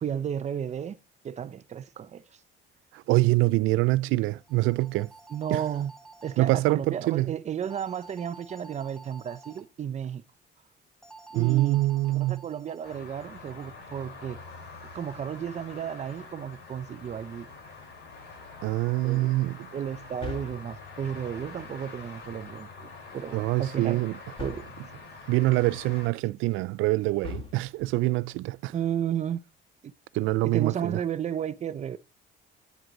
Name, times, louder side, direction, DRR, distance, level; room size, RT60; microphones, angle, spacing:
voice 1, 0.0-1.0 1.2-2.4 5.3-5.9 6.2-10.2 11.3-11.8 12.1-14.4 14.9-17.5 19.0-19.3 19.7-24.1 24.4-24.7 28.7-29.4 29.8-29.9 30.4-32.0, right 9 dB, 35° right, 0.6 m, -33 dB
voice 2, 2.9-5.1 5.5-5.6 6.4-7.3 11.3-12.4 18.6-19.7 23.3-24.1 25.3-28.7 30.1-31.0, right 19 dB, 85° right, 0.4 m, -25 dB
sound 1, 4.4-6.4 7.6-9.6 11.0-13.0, right 3 dB, ahead, 1.3 m, -50 dB
sound 2, 12.8-26.1, left 4 dB, 60° left, 4.9 m, -45 dB
sound 3, 17.0-17.6 20.2-21.1 24.4-25.0 27.2-28.0, left 4 dB, 30° left, 3.0 m, -41 dB
9.4 x 7.8 x 3.9 m
cardioid pair, 135°, 20 cm